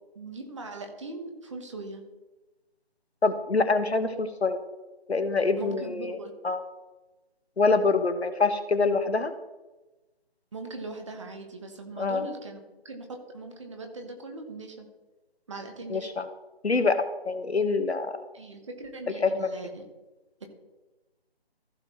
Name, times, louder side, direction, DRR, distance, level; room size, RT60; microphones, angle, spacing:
voice 1, 0.1-2.0 5.6-6.3 10.5-13.1 13.3-14.9 15.5-16.1 18.3-19.8 20.4-20.5, right 3 dB, 30° right, 4 dB, 1.3 m, -40 dB
voice 2, 3.2-4.6 5.1-6.2 6.4-6.6 7.6-9.3 12.0-12.3 15.9-16.3 16.6-18.2 19.2-19.5, left 4 dB, 85° left, 9 dB, 1.2 m, -25 dB
15.0 x 6.4 x 3.2 m, 1.1 s
figure-of-eight pair, 160°, 31 cm